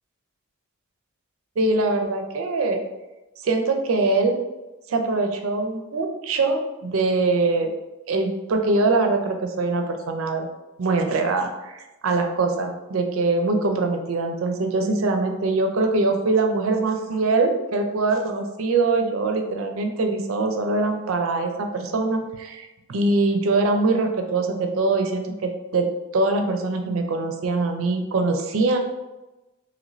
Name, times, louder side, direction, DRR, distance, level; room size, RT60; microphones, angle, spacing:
voice 1, 1.6-2.8 3.4-4.4 4.9-7.7 8.1-10.5 10.8-25.9 26.1-28.8, right 3 dB, 80° right, 4 dB, 0.5 m, -23 dB
3.0 x 2.5 x 3.0 m, 1.0 s
head